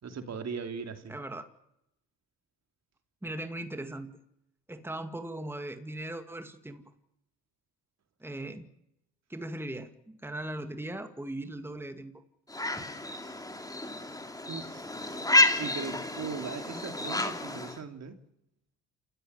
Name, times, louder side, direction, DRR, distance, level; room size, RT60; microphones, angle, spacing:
voice 1, 0.0-1.1 14.5-14.9 15.6-18.2, right 5 dB, 50° right, 7 dB, 3.0 m, -39 dB
voice 2, 1.1-1.5 3.2-4.1 4.7-6.8 8.2-8.7 9.3-12.1, right 1 dB, 5° right, 8 dB, 2.1 m, -38 dB
sound 1, 12.5-17.8, left 2 dB, 10° left, 2.9 m, -30 dB
28.0 x 14.5 x 8.1 m, 0.82 s
supercardioid pair, 75°, 35 cm